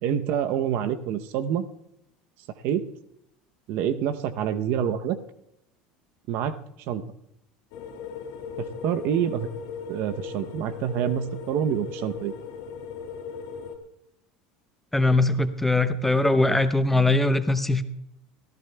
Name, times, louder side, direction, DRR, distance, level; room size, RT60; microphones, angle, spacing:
voice 1, 0.0-1.7 2.6-2.8 3.7-5.2 6.3-6.6 6.9-7.0 8.6-9.5 9.9-12.3, right 9 dB, 60° right, 11 dB, 0.7 m, -27 dB
sound 1, 7.7-13.8, left 6 dB, 70° left, 1.8 m, -37 dB
voice 2, 14.9-17.8, left 2 dB, 5° left, 10 dB, 0.7 m, -21 dB
24.0 x 14.5 x 2.3 m, 0.81 s
supercardioid pair, 110°, 4 cm